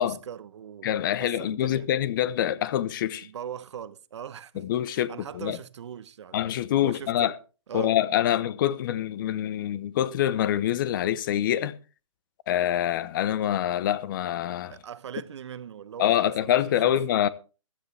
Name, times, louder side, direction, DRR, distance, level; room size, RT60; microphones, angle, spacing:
voice 1, 0.0-1.9 3.2-6.5 6.8-7.3 7.7-8.0 14.7-16.6 16.8-17.0, right 9 dB, 55° right, 1.0 m, -40 dB
voice 2, 0.8-3.3 4.5-5.6 6.3-7.3 7.7-11.7 12.5-14.8 16.0-17.3, left 11 dB, 40° left, 1.0 m, -25 dB
15.0 x 13.5 x 3.4 m
hypercardioid pair, 140°, 17 cm